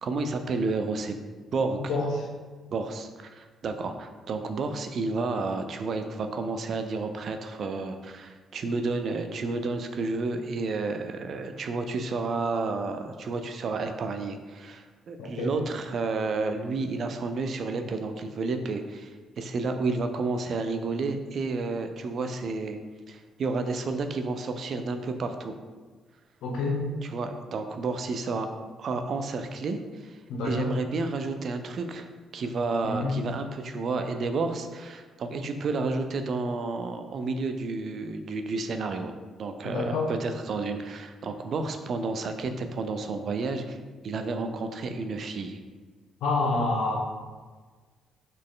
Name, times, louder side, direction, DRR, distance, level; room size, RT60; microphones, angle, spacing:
voice 1, 0.0-1.9 2.7-22.8 23.1-25.5 27.1-28.5 28.8-30.2 30.5-32.1 32.3-39.1 39.4-43.8 44.0-45.6, right 3 dB, 55° right, 7 dB, 0.4 m, -31 dB
voice 2, 1.8-2.3 15.2-15.5 26.4-26.8 30.3-30.7 32.8-33.2 39.6-40.1 46.2-47.0, left 3 dB, 85° left, -2 dB, 0.9 m, -28 dB
4.1 x 3.1 x 3.8 m, 1.4 s
cardioid pair, 90°, 0 cm